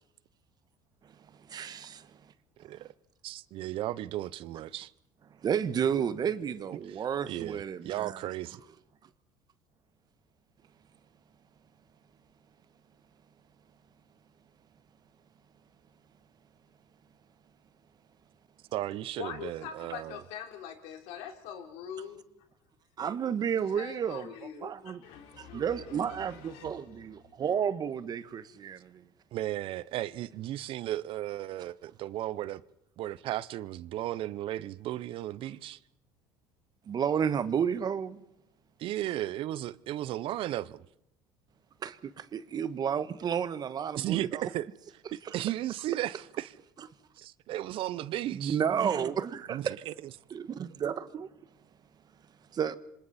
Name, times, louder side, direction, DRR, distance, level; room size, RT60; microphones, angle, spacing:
voice 1, 1.5-2.1 5.4-8.3 23.0-25.0 25.4-29.0 36.9-38.2 41.8-44.4 45.2-45.3 48.3-49.8 50.3-51.3 52.5-52.8, right 8 dB, 40° right, 1.3 m, -31 dB
voice 2, 3.2-4.9 7.0-8.6 18.7-20.2 29.3-32.6 33.0-35.8 38.8-40.9 43.9-44.7 45.1-46.5 47.2-48.6 49.5-49.9, right 14 dB, 60° right, 0.8 m, -35 dB
voice 3, 19.2-22.2 23.7-26.9, left 9 dB, 75° left, 3.6 m, -43 dB
27.5 x 25.5 x 4.3 m
supercardioid pair, 90°, 10 cm